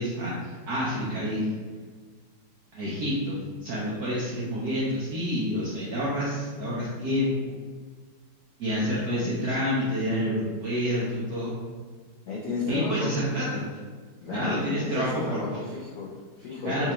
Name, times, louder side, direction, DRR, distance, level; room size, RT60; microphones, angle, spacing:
voice 1, 0.0-1.5 2.7-7.6 8.6-11.6 12.7-13.6 14.3-15.6 16.6-16.9, equal, 70° right, -7 dB, 0.9 m, -28 dB
voice 2, 12.3-13.1 14.2-16.9, left 4 dB, 85° left, -7 dB, 0.7 m, -34 dB
4.2 x 2.4 x 2.9 m, 1.5 s
omnidirectional pair, 2.4 m